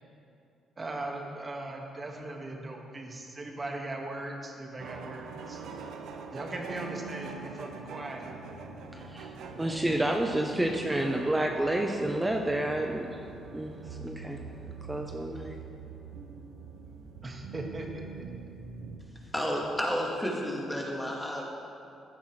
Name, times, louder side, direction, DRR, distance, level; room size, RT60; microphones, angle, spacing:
voice 1, 0.8-5.6 6.3-8.3 17.2-18.0, right 2 dB, 30° right, 1 dB, 1.7 m, -39 dB
sound 1, 4.8-19.0, right 4 dB, 80° right, 0.9 m, -43 dB
voice 2, 8.9-13.2 13.5-15.6, right 1 dB, 15° right, 2 dB, 0.7 m, -30 dB
voice 3, 19.3-21.4, equal, 5° left, -2 dB, 2.1 m, -31 dB
15.0 x 10.0 x 3.3 m, 2.5 s
cardioid pair, 90°, 0 cm